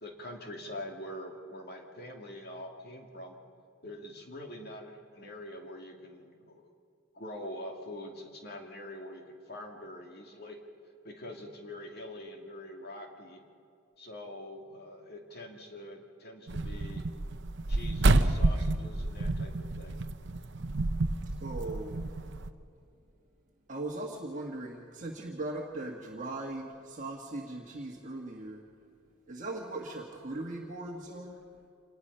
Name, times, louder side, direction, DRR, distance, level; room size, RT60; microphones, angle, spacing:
voice 1, 0.0-3.4 3.8-6.7 7.1-10.6 11.0-13.4 14.0-17.1 17.7-20.0, left 1 dB, 45° left, 2 dB, 2.5 m, -44 dB
sound 1, 16.5-22.5, right 2 dB, 55° right, 0.8 m, -29 dB
voice 2, 21.4-22.0 23.7-28.6 29.3-31.4, right 2 dB, 35° right, -1 dB, 1.5 m, -39 dB
26.5 x 19.0 x 5.6 m, 2.5 s
head